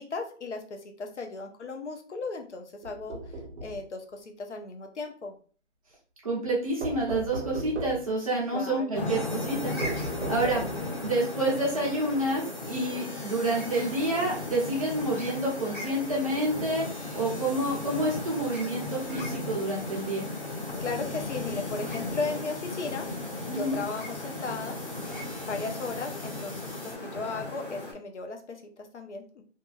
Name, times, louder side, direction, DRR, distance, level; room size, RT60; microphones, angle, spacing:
voice 1, 0.0-3.2 3.6-5.3 8.5-9.2 10.2-10.9 20.8-23.1 23.5-24.8 25.0-25.2 25.5-29.4, left 3 dB, 75° left, 4 dB, 0.8 m, -36 dB
sound 1, 2.8-3.8 6.8-8.1 9.8-11.0, right 2 dB, 75° right, 0.7 m, -37 dB
voice 2, 6.2-10.6 11.0-16.8 17.1-20.3 23.5-23.8, right 1 dB, 30° right, -4 dB, 0.9 m, -29 dB
sound 2, 8.9-27.9, left 2 dB, 45° left, 1.4 m, -36 dB
sound 3, 9.0-26.9, equal, 30° left, 0.6 m, -46 dB
2.6 x 2.6 x 2.5 m, 0.41 s
hypercardioid pair, 170°, 35 cm